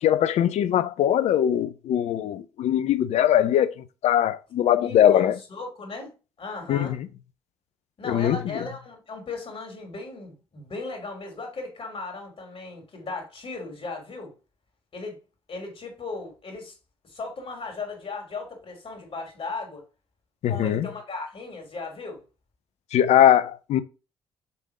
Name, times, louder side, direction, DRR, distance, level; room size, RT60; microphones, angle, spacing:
voice 1, 0.0-5.4 6.7-7.0 8.0-8.6 20.4-20.9 22.9-23.8, left 10 dB, 65° left, 0.6 m, -21 dB
voice 2, 4.7-6.1 6.4-7.0 8.0-14.3 14.9-15.2 15.5-16.8 17.0-19.8 20.5-22.2, left 3 dB, 50° left, 3.1 m, -36 dB
6.8 x 3.6 x 4.9 m
hypercardioid pair, 45°, 12 cm